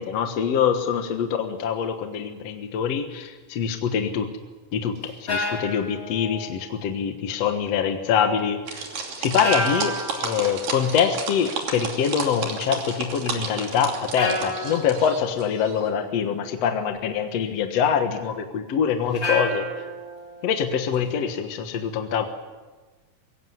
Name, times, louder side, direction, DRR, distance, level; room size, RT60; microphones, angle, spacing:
voice 1, 0.0-4.3 4.7-8.9 9.2-19.7 20.4-22.2, left 7 dB, 55° left, 6 dB, 2.2 m, -24 dB
sound 1, 1.5-1.8 5.0-6.9 9.4-10.8 13.3-13.4 14.2-15.8 19.1-21.1, left 1 dB, 25° left, 3.9 m, -31 dB
sound 2, 8.7-15.9, right 5 dB, 75° right, 4.4 m, -32 dB
22.5 x 17.5 x 9.6 m, 1.3 s
omnidirectional pair, 3.9 m